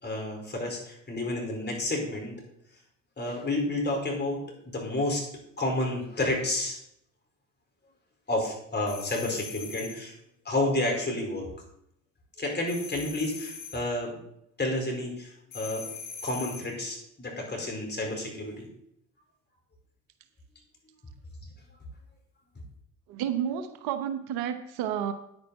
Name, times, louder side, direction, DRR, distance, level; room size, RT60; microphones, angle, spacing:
voice 1, 0.0-2.3 3.2-5.2 5.6-6.8 8.3-10.1 10.4-11.5 12.4-14.2 14.6-15.8 16.2-18.7, left 1 dB, 25° left, 0 dB, 4.8 m, -30 dB
sound 1, 8.9-10.1 12.7-13.9 15.5-16.8, left 6 dB, 85° left, 2.3 m, -41 dB
voice 2, 23.1-25.1, right 9 dB, 75° right, 10 dB, 1.0 m, -31 dB
9.8 x 9.4 x 4.2 m, 0.76 s
hypercardioid pair, 65°, 38 cm